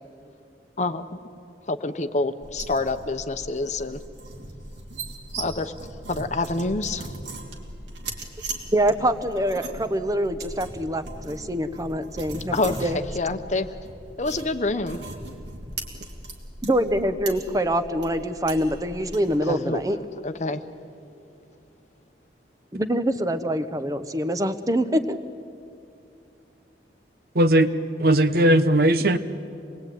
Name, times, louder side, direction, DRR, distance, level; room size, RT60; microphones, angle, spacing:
voice 1, 0.8-1.2 1.7-4.0 5.4-5.7 6.1-7.1 12.5-13.7 14.2-15.0 19.4-19.8 20.2-20.6, left 2 dB, 40° left, 10 dB, 1.0 m, -27 dB
sound 1, 2.4-19.4, right 2 dB, 90° right, 3.0 m, -38 dB
voice 2, 8.7-13.0 16.6-20.0 22.7-25.2, right 1 dB, 20° right, 10 dB, 1.0 m, -25 dB
voice 3, 27.3-27.7 28.0-29.2, right 1 dB, 60° right, 10 dB, 1.0 m, -18 dB
26.5 x 20.0 x 9.2 m, 2.5 s
head